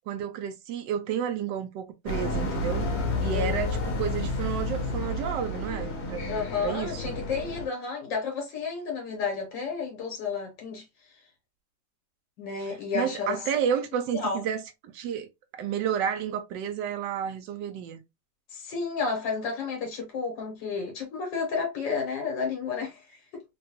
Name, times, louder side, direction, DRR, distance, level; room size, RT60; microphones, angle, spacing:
voice 1, 0.1-2.9 3.2-6.3 6.6-7.2 12.6-18.0, right 8 dB, 80° right, 1.2 m, -31 dB
sound 1, 2.1-7.7, left 2 dB, 65° left, 1.7 m, -30 dB
voice 2, 6.3-10.8 12.4-13.4 14.1-14.4 18.5-23.4, left 5 dB, 90° left, 1.9 m, -31 dB
3.7 x 2.3 x 2.8 m
omnidirectional pair, 1.9 m